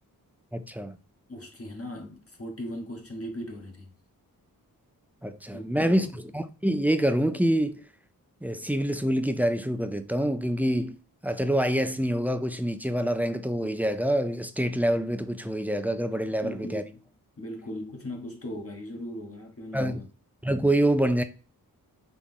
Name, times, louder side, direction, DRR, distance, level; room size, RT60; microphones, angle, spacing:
voice 1, 0.5-1.0 5.2-7.8 8.4-16.8 19.7-20.0 20.4-21.2, right 1 dB, 5° right, 0.4 m, -26 dB
voice 2, 1.3-3.9 5.5-6.1 16.4-17.1 17.4-20.1, equal, 40° left, 1.1 m, -38 dB
3.7 x 2.9 x 3.6 m
cardioid pair, 55°, 37 cm